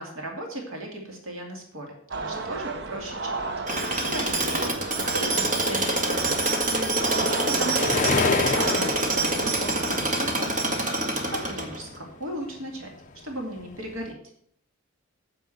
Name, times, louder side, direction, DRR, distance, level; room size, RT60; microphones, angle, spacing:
voice 1, 0.0-3.5 4.0-6.6 7.2-10.6 11.0-12.9 13.2-14.2, right 1 dB, 70° right, 1 dB, 2.7 m, -36 dB
sound 1, 2.1-10.2, right 3 dB, 50° right, 0.9 m, -34 dB
Tools, 3.7-12.0, right 2 dB, 35° right, 1.8 m, -26 dB
sound 2, 6.6-12.0 12.3-14.1, left 4 dB, 35° left, 0.6 m, -31 dB
9.5 x 6.9 x 7.9 m, 0.65 s
head